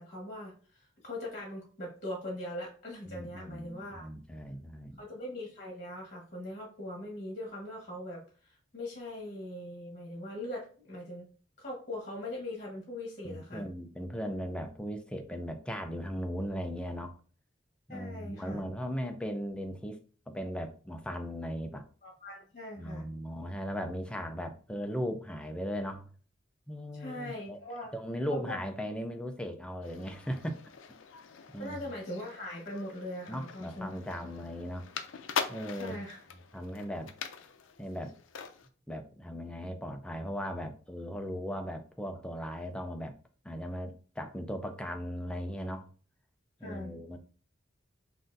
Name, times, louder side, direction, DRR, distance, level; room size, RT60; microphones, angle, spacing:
voice 1, 0.0-4.1 5.0-11.3 11.6-13.7 17.9-18.6 22.0-23.1 26.9-27.9 28.3-28.6 31.6-33.9 34.2-34.3 35.7-36.2 46.6-46.9, left 1 dB, 40° left, -2 dB, 1.4 m, -41 dB
voice 2, 3.1-5.0 13.2-17.2 17.9-20.0 20.3-21.9 22.8-26.1 26.7-27.6 27.9-30.6 31.5-31.9 33.3-34.9 35.5-36.0 36.5-37.1 37.8-38.1 38.9-43.1 43.4-45.9 46.6-47.2, equal, 5° left, 6 dB, 0.4 m, -37 dB
sound 1, 29.8-38.7, left 7 dB, 90° left, 0.5 m, -42 dB
5.8 x 2.6 x 2.6 m, 0.41 s
head